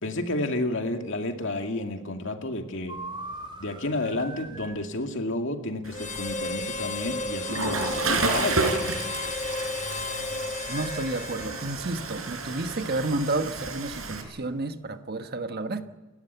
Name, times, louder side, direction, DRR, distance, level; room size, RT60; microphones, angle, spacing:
voice 1, 0.0-3.0 3.6-8.6, left 2 dB, 65° left, 2.3 m, -31 dB
sound 1, 2.9-4.9 10.5-13.2, right 2 dB, 25° right, 2.5 m, -43 dB
Water / Toilet flush, 5.8-14.2, right 3 dB, 85° right, 4.6 m, -32 dB
Harmonica, 5.9-11.9, left 3 dB, 35° left, 1.5 m, -33 dB
voice 2, 10.7-15.8, right 2 dB, 50° right, 1.3 m, -31 dB
29.0 x 13.0 x 8.1 m
head